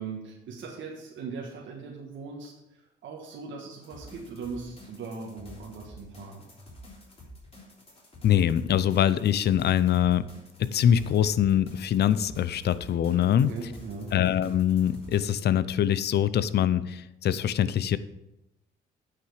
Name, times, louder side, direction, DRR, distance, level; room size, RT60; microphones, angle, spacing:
voice 1, 0.0-2.5 3.0-6.5 13.3-14.1, right 4 dB, 75° right, -1 dB, 1.6 m, -39 dB
sound 1, 3.8-15.4, equal, 30° left, 3.3 m, -49 dB
voice 2, 8.2-10.2 10.6-13.5 14.1-18.0, left 10 dB, 55° left, 16 dB, 0.5 m, -23 dB
9.2 x 5.9 x 4.9 m, 0.89 s
cardioid pair, 90°, 20 cm